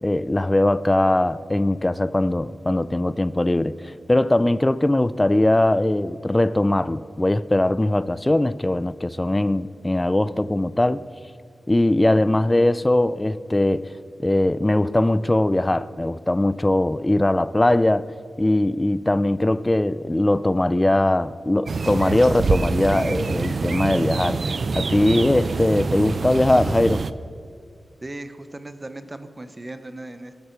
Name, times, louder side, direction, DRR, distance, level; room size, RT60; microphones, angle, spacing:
voice 1, 0.0-11.0 11.7-13.9 14.2-18.1 18.4-27.0, left 1 dB, 15° left, 0.4 m, -20 dB
sound 1, 21.7-27.1, right 4 dB, 55° right, 0.5 m, -25 dB
voice 2, 28.0-30.3, right 2 dB, 20° right, 0.8 m, -37 dB
21.5 x 12.0 x 4.5 m
wide cardioid pair, 135°, 0 cm